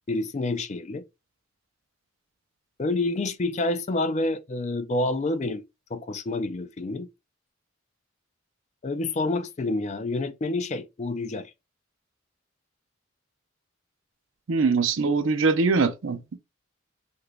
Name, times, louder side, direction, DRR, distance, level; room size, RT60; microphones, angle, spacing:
voice 1, 0.1-1.0 2.8-5.6 5.9-7.1 8.8-11.5, left 2 dB, 35° left, 0.4 m, -28 dB
voice 2, 14.5-16.4, right 4 dB, 70° right, 0.5 m, -23 dB
2.9 x 2.5 x 3.2 m
head